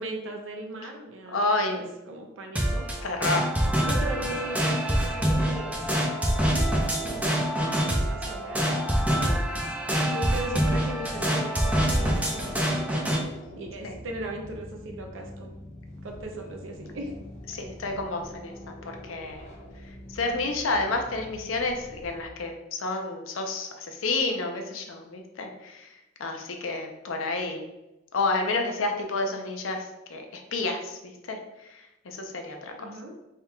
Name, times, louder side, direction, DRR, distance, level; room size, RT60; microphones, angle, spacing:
voice 1, 0.0-1.4 1.7-2.9 3.8-8.8 10.1-13.0 13.5-15.6 16.0-17.1 32.8-33.1, right 1 dB, 70° right, 2 dB, 0.5 m, -38 dB
voice 2, 1.3-1.9 3.0-3.5 9.2-9.4 13.8-13.9 17.5-19.5 20.1-25.9 26.2-27.7 28.1-30.3 30.5-31.0 31.3-31.4 31.7-32.9, left 3 dB, 85° left, 4 dB, 0.6 m, -30 dB
sound 1, 2.6-13.2, equal, 5° right, 0.5 m, -25 dB
sound 2, 11.8-22.2, left 1 dB, 35° left, 0.7 m, -45 dB
3.5 x 2.3 x 4.4 m, 0.95 s
head